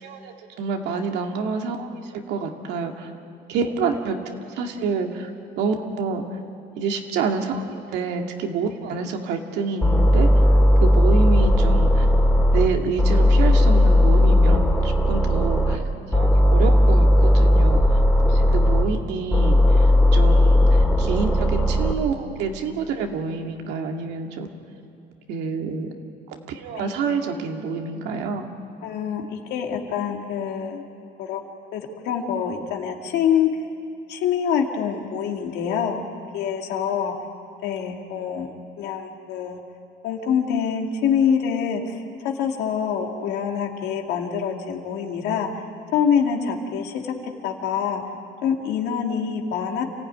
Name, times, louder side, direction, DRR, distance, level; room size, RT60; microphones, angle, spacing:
voice 1, 0.0-2.0 2.3-3.1 3.5-5.3 5.6-6.2 6.8-10.3 10.8-12.1 12.5-14.8 15.1-15.8 16.1-17.8 18.3-19.6 20.1-24.5 25.3-25.9 26.5-28.5, right 5 dB, 85° right, 3 dB, 2.2 m, -27 dB
sound 1, 9.8-12.7 13.0-15.8 16.1-18.8 19.3-21.9, left 1 dB, 5° left, 2.7 m, -16 dB
voice 2, 28.8-30.8 31.2-31.4 31.7-33.5 34.1-36.0 36.3-37.1 37.6-38.5 38.8-39.6 40.0-45.6 45.9-47.1 47.4-48.0 48.4-49.8, left 7 dB, 85° left, 2 dB, 2.4 m, -25 dB
28.0 x 15.5 x 9.6 m, 2.5 s
cardioid pair, 110°, 17 cm